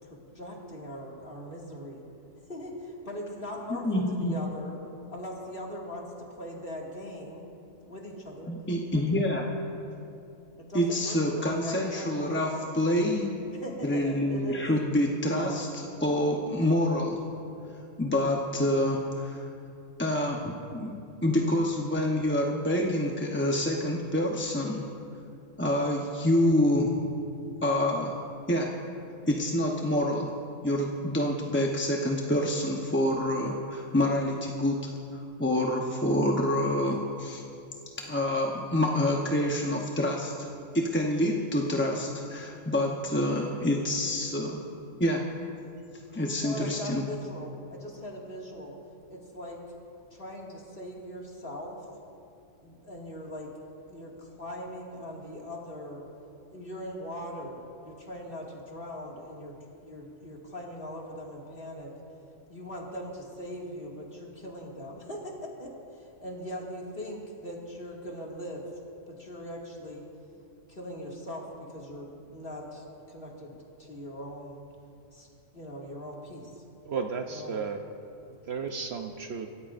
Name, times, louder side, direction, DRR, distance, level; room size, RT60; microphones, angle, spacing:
voice 1, 0.0-2.0 2.5-4.8 5.1-7.5 7.9-8.5 8.9-9.0 10.6-12.5 13.5-14.7 46.4-48.8 49.1-49.6 50.1-51.9 52.6-53.5 53.9-56.1 56.5-61.9 62.5-68.7 69.1-70.0 70.7-74.6 75.1-75.3 75.5-76.6 77.3-77.6, equal, 45° left, -3 dB, 2.4 m, -40 dB
voice 2, 3.8-4.4 8.5-9.5 10.7-13.3 13.8-17.2 18.0-19.5 20.0-24.9 25.6-27.1 27.6-28.7 29.3-30.3 30.6-34.8 35.1-37.4 38.1-40.3 40.7-44.6 45.0-45.2 46.1-47.0, left 1 dB, 10° left, -1 dB, 0.7 m, -27 dB
voice 3, 76.9-77.8 78.5-79.5, right 5 dB, 60° right, 5 dB, 0.9 m, -33 dB
27.0 x 14.0 x 2.6 m, 2.6 s
omnidirectional pair, 1.4 m